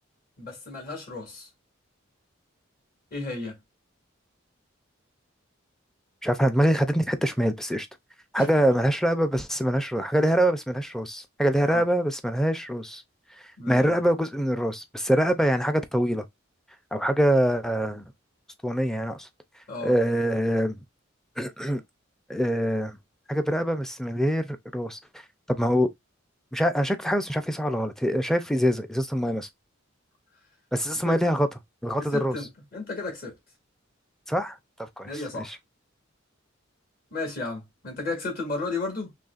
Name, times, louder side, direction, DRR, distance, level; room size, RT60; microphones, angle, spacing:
voice 1, 0.4-1.5 3.1-3.6 8.3-8.5 11.7-11.8 13.6-13.9 19.7-19.9 31.0-31.2 32.0-33.3 35.1-35.5 37.1-39.1, left 3 dB, 45° left, 2.1 m, -33 dB
voice 2, 6.2-7.9 8.3-13.0 13.7-16.2 16.9-18.0 18.6-19.3 19.8-20.8 21.4-21.8 22.3-23.0 23.3-25.0 25.5-25.9 26.5-29.5 30.7-31.5 31.8-32.4 34.3-34.6 35.0-35.1 35.4-35.6, equal, ahead, 0.4 m, -24 dB
4.0 x 3.1 x 2.4 m
head